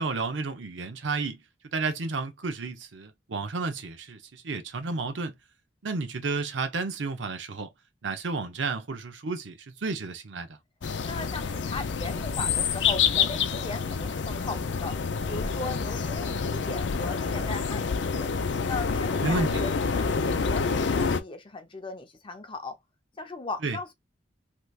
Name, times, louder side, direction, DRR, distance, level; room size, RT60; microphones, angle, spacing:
voice 1, 0.0-1.4 1.7-5.3 5.8-7.7 8.0-10.5 19.2-19.6 23.6-23.8, right 3 dB, 75° right, 0.7 m, -31 dB
sound 1, 10.8-21.2, left 5 dB, 65° left, 0.5 m, -27 dB
voice 2, 11.0-15.0 15.3-18.3 18.6-22.8 23.2-23.9, left 3 dB, 30° left, 0.6 m, -38 dB
3.3 x 3.0 x 2.3 m
head